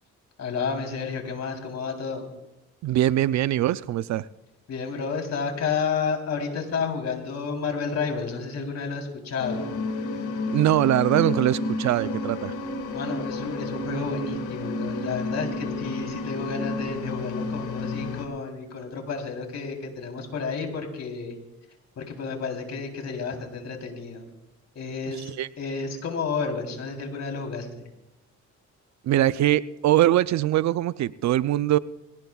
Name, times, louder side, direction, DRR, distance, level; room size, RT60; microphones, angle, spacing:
voice 1, 0.4-2.3 4.7-9.7 12.9-21.4 22.0-24.3 24.8-27.7, left 5 dB, 60° left, 3 dB, 3.7 m, -31 dB
voice 2, 2.8-4.3 10.5-12.5 25.4-25.5 29.0-31.8, right 13 dB, 65° right, 16 dB, 0.5 m, -22 dB
sound 1, 9.4-18.3, left 2 dB, 80° left, 1.9 m, -31 dB
22.0 x 18.0 x 2.4 m, 0.93 s
cardioid pair, 90°, 30 cm